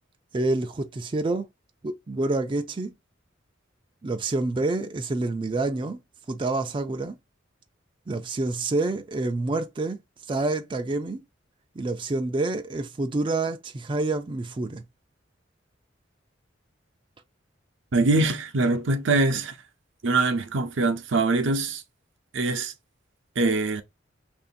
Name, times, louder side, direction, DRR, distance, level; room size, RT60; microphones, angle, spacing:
voice 1, 0.3-1.5 1.8-2.9 4.0-6.0 6.3-7.2 8.1-10.0 10.3-11.2 11.8-14.8, right 2 dB, 25° right, 0.4 m, -27 dB
voice 2, 17.9-19.5 20.0-21.8 22.3-22.7 23.4-23.8, right 3 dB, 70° right, 0.6 m, -23 dB
3.0 x 2.6 x 4.2 m
head